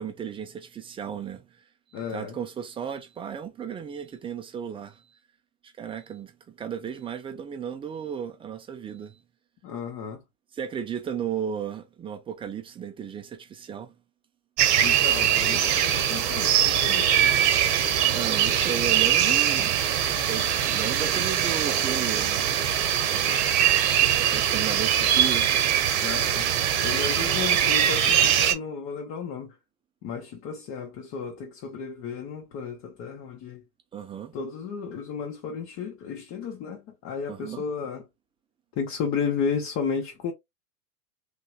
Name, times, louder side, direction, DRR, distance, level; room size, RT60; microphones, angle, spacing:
voice 1, 0.0-1.4 1.9-5.2 5.8-9.2 10.5-13.9 18.0-19.8 20.3-22.5 23.1-23.5 24.1-25.5 33.9-34.4 37.3-37.6, right 8 dB, 15° right, 0.4 m, -34 dB
voice 2, 1.9-2.4 9.6-10.2 14.8-17.4 26.0-26.5 26.8-29.5 30.0-33.6 34.3-38.0 38.8-40.3, left 6 dB, 35° left, 0.9 m, -33 dB
sound 1, 14.6-28.5, right 10 dB, 45° right, 0.9 m, -22 dB
3.4 x 2.6 x 2.4 m
hypercardioid pair, 100°, 44 cm